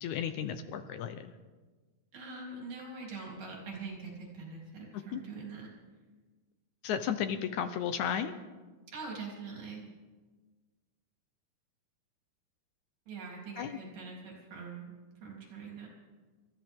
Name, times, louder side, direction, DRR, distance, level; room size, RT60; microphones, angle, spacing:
voice 1, 0.0-1.3 5.1-5.2 6.8-8.3 13.6-13.8, left 8 dB, 75° left, 9 dB, 1.9 m, -34 dB
voice 2, 2.1-5.7 8.9-9.8 13.1-15.9, right 4 dB, 75° right, -2 dB, 4.9 m, -43 dB
28.5 x 13.5 x 3.6 m, 1.3 s
omnidirectional pair, 3.8 m